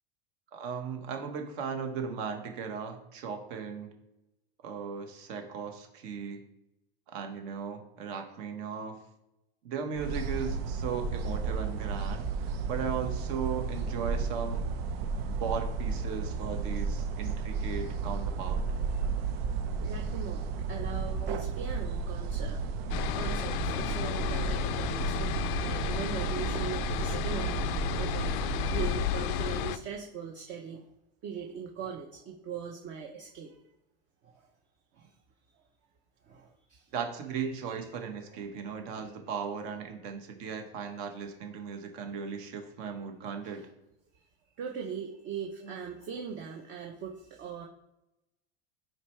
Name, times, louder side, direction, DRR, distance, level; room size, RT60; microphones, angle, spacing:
voice 1, 0.5-3.9 4.6-6.4 7.1-9.0 9.6-14.6 15.3-18.6 36.9-43.6 45.6-45.8, right 6 dB, 60° right, 5 dB, 1.4 m, -37 dB
sound 1, 9.9-29.1, right 5 dB, 75° right, 0.8 m, -33 dB
voice 2, 19.8-22.6 23.1-30.8 31.2-33.5 36.3-36.8 44.6-47.7, right 6 dB, 40° right, 1 dB, 0.8 m, -40 dB
sound 2, 22.9-29.8, left 11 dB, 60° left, 0.5 m, -33 dB
9.2 x 4.6 x 3.3 m, 0.90 s
supercardioid pair, 150°, 30 cm